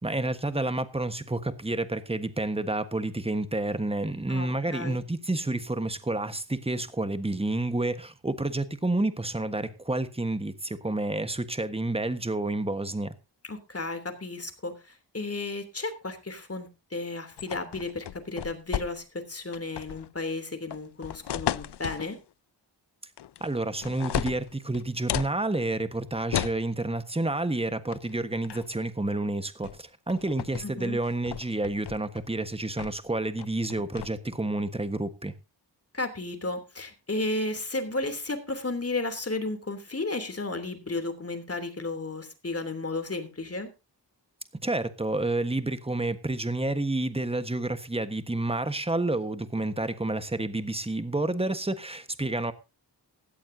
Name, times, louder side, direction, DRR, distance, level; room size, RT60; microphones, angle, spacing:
voice 1, 0.0-13.1 23.4-35.3 44.6-52.5, right 2 dB, 15° right, 1.4 m, -29 dB
voice 2, 4.3-5.0 13.4-22.2 30.6-31.0 35.9-43.7, left 2 dB, 35° left, 3.1 m, -33 dB
sound 1, 17.4-19.2 19.5-20.1 20.7-22.1 23.2-23.5 23.8-25.3 26.3-26.6 27.9-28.1 28.4-28.8 29.6-29.8 30.1-30.6 31.0-32.3 32.8-33.1 33.4-34.1, left 11 dB, 70° left, 0.5 m, -34 dB
16.5 x 14.0 x 2.8 m
wide cardioid pair, 90°, 42 cm